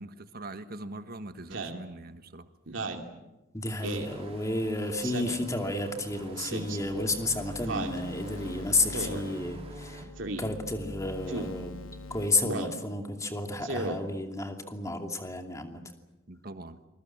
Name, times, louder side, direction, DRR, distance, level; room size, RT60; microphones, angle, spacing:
voice 1, 0.0-2.5 10.0-10.1 16.3-16.8, right 2 dB, 50° right, 10 dB, 1.5 m, -42 dB
Speech synthesizer, 1.5-1.8 2.7-3.1 3.8-4.1 5.0-5.5 6.4-6.8 7.7-8.0 8.9-9.2 10.2-10.4 11.3-11.5 12.4-12.8 13.6-14.0, right 2 dB, 65° right, 2.8 m, -34 dB
voice 2, 3.5-10.1 10.4-11.8 12.1-15.8, left 2 dB, 15° left, 4 dB, 2.6 m, -31 dB
sound 1, 3.8-10.0, right 2 dB, 30° right, 3.9 m, -48 dB
sound 2, 6.8-12.3, left 1 dB, 90° left, 3.0 m, -43 dB
28.0 x 22.0 x 7.5 m, 1.0 s
head